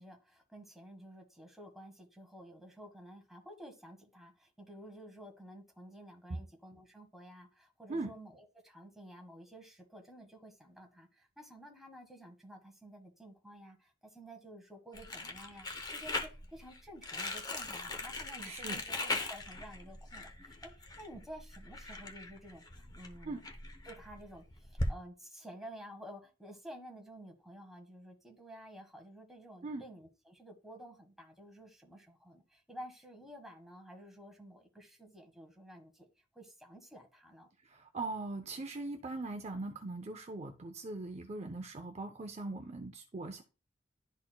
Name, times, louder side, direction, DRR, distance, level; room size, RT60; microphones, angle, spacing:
voice 1, 0.0-23.4 23.8-36.1 36.3-37.5, equal, ahead, 1.3 m, -52 dB
Crumpling crinkling, 14.9-24.9, left 2 dB, 20° left, 0.8 m, -40 dB
voice 2, 18.4-18.8 23.2-23.4 29.6-29.8 37.6-43.4, right 2 dB, 35° right, 0.6 m, -40 dB
11.5 x 4.1 x 2.2 m
head